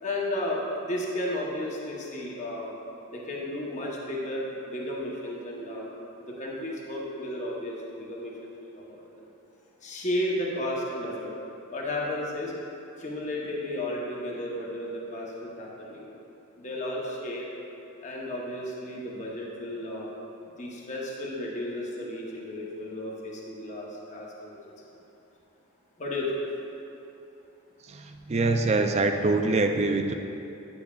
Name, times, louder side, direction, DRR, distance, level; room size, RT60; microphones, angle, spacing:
voice 1, 0.0-2.7 3.1-5.8 6.2-9.0 9.8-11.3 11.7-12.5 13.0-16.0 16.6-17.5 18.0-20.1 20.6-24.6 26.0-26.3, left 1 dB, 35° left, -4 dB, 0.9 m, -33 dB
voice 2, 27.9-30.1, right 3 dB, 30° right, 5 dB, 0.3 m, -24 dB
9.8 x 6.9 x 2.4 m, 2.9 s
head